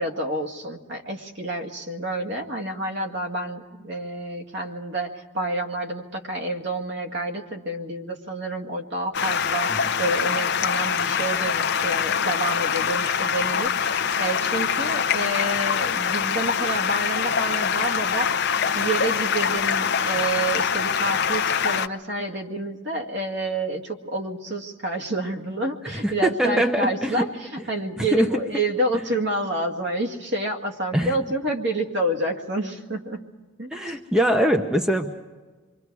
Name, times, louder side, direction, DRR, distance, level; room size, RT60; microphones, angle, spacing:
voice 1, 0.0-33.2 33.6-33.9, right 2 dB, 55° right, 3 dB, 2.2 m, -29 dB
Stream, 9.1-21.9, left 7 dB, 50° left, 0.7 m, -24 dB
voice 2, 25.8-27.2 28.0-28.4 30.9-31.2 33.7-35.1, right 1 dB, 5° right, 4 dB, 0.9 m, -23 dB
28.0 x 23.5 x 4.8 m, 1.3 s
head